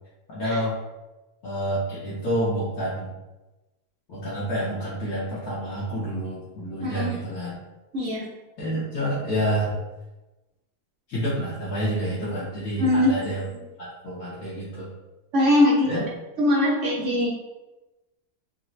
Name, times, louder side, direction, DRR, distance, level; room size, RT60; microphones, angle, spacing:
voice 1, 0.3-0.8 1.4-3.1 4.1-7.5 8.6-9.8 11.1-13.4 13.8-14.9 15.8-16.0, equal, 65° left, -9 dB, 1.3 m, -28 dB
voice 2, 6.8-7.1 7.9-8.2 12.8-13.1 13.4-13.6 15.3-16.0 16.4-17.3, left 1 dB, 55° right, -5 dB, 0.9 m, -21 dB
3.9 x 2.1 x 3.0 m, 1.1 s
omnidirectional pair, 1.8 m